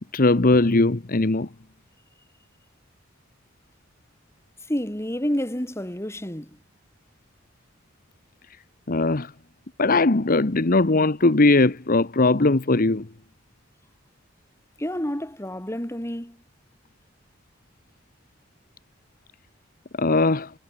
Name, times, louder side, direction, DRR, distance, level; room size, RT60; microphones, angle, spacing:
voice 1, 0.1-1.5 8.9-9.3 9.8-13.1 20.0-20.5, left 2 dB, 45° left, 1.1 m, -19 dB
voice 2, 4.7-6.6 14.8-16.4, equal, 15° left, 4.3 m, -29 dB
head